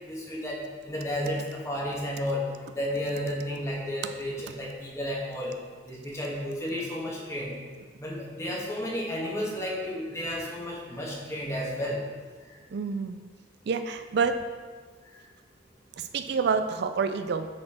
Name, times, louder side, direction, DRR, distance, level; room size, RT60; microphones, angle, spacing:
voice 1, 0.0-5.5 5.8-7.6 8.0-12.0 12.4-12.6, left 1 dB, 15° left, -3 dB, 1.4 m, -32 dB
voice 2, 12.7-13.2 13.7-14.4 16.0-17.5, right 5 dB, 60° right, 8 dB, 0.4 m, -27 dB
9.8 x 4.4 x 4.3 m, 1.5 s
head